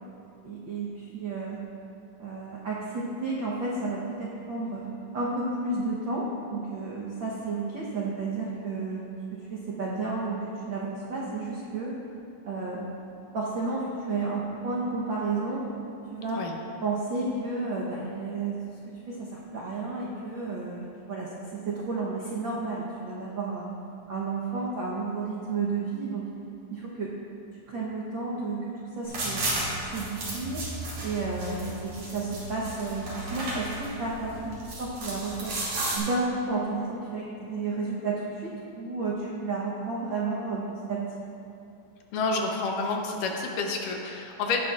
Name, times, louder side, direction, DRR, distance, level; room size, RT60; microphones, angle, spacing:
voice 1, 0.4-1.6 2.2-9.0 9.3-11.9 12.5-12.8 13.3-15.6 16.1-16.4 16.8-18.6 18.9-23.7 24.1-26.3 26.7-27.1 27.7-29.5 29.8-30.6 31.0-35.6 35.9-40.6 40.9-41.2, right 3 dB, 70° right, -5 dB, 1.1 m, -32 dB
sound 1, 29.0-36.0, right 2 dB, 55° right, 3.6 m, -34 dB
voice 2, 42.1-44.6, left 3 dB, 75° left, 1 dB, 2.5 m, -29 dB
16.5 x 10.0 x 2.5 m, 2.7 s
omnidirectional pair, 3.8 m